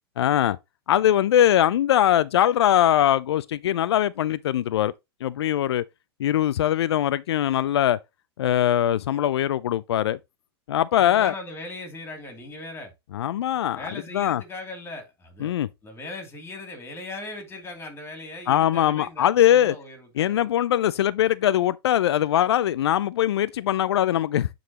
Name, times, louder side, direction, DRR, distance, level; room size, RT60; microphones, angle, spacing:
voice 1, 0.2-0.6 0.9-4.9 5.2-5.8 6.2-8.0 8.4-10.2 10.7-11.3 13.1-13.8 14.1-14.4 15.4-15.7 18.5-19.8 20.2-24.5, left 11 dB, 90° left, 0.4 m, -21 dB
voice 2, 10.9-12.9 13.7-15.5 15.8-20.5, left 2 dB, 15° left, 2.7 m, -39 dB
9.5 x 3.9 x 3.0 m
hypercardioid pair, 130°, 13 cm